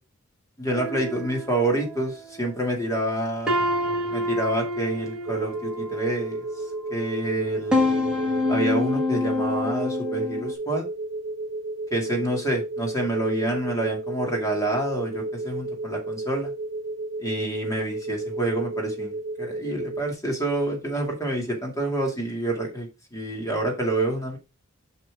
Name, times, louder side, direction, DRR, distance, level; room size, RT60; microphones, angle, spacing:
voice 1, 0.6-3.6 4.1-6.5 6.9-8.0 8.5-10.9 11.9-16.5 17.2-24.4, right 1 dB, 15° left, 2.4 m, -28 dB
sound 1, 0.7-2.5 3.0-3.2 3.5-6.7 7.3-10.5, left 2 dB, 5° right, 1.9 m, -27 dB
sound 2, 5.3-20.1, right 2 dB, 45° right, 1.1 m, -33 dB
7.6 x 5.9 x 3.6 m
head